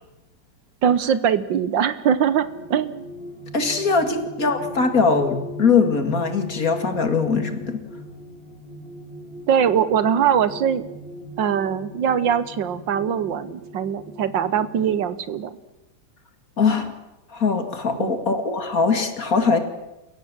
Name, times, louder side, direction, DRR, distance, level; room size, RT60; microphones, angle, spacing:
voice 1, 0.8-3.0 9.5-10.9 11.4-15.5 18.0-18.1, right 8 dB, 75° right, 14 dB, 1.7 m, -22 dB
sound 1, 2.2-15.0, equal, 70° left, 3.5 m, -39 dB
voice 2, 3.5-7.8 16.6-16.9 17.3-19.6, left 5 dB, 45° left, 7 dB, 2.5 m, -21 dB
29.5 x 16.5 x 7.5 m, 1.0 s
omnidirectional pair, 2.1 m